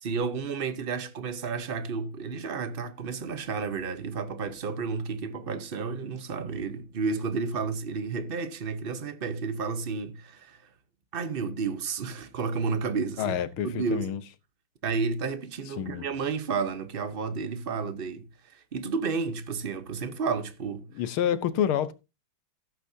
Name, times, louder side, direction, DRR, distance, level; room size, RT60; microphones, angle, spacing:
voice 1, 0.0-10.6 11.1-13.4 13.6-14.2 14.8-20.9, right 5 dB, 40° right, 0.8 m, -31 dB
voice 2, 13.2-14.2 15.8-16.1 20.9-21.9, left 9 dB, 85° left, 1.7 m, -28 dB
15.5 x 8.6 x 2.7 m
omnidirectional pair, 2.3 m